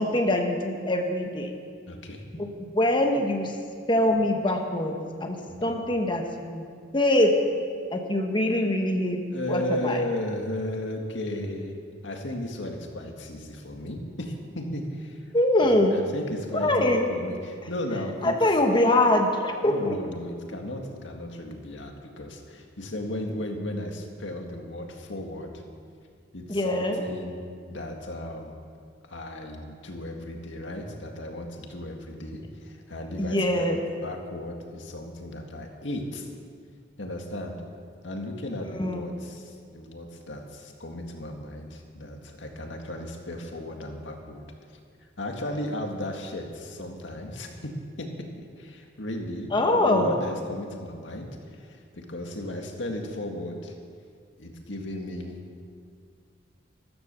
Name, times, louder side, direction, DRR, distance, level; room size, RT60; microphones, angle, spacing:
voice 1, 0.0-1.5 2.4-2.5 2.7-3.5 3.9-6.6 6.9-7.3 7.9-9.2 9.5-10.0 15.3-16.0 16.6-17.0 18.2-20.0 26.5-27.0 33.2-33.8 38.7-39.0 49.5-50.1, left 1 dB, 25° left, 3 dB, 1.3 m, -23 dB
voice 2, 1.9-2.2 4.1-4.2 5.7-5.8 9.3-11.7 12.0-15.3 15.9-18.6 19.6-25.6 26.3-27.4 27.7-28.5 29.0-36.3 37.0-37.6 38.0-44.4 45.0-47.7 48.0-53.8 54.4-55.4, left 1 dB, 85° left, 3 dB, 2.0 m, -35 dB
14.5 x 13.5 x 6.9 m, 2.1 s
head